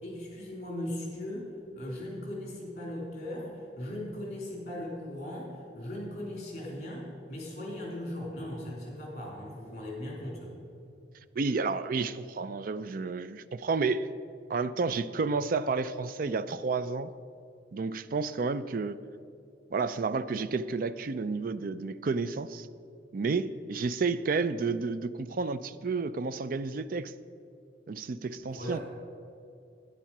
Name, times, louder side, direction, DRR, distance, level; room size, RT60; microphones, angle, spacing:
voice 1, 0.0-10.5 28.4-28.8, left 1 dB, 40° left, -2 dB, 3.3 m, -38 dB
voice 2, 11.4-14.1 14.5-17.1 17.7-19.0 19.7-22.7 23.1-27.1 27.9-28.8, right 4 dB, 50° right, 14 dB, 0.4 m, -31 dB
10.0 x 9.8 x 5.9 m, 2.5 s
head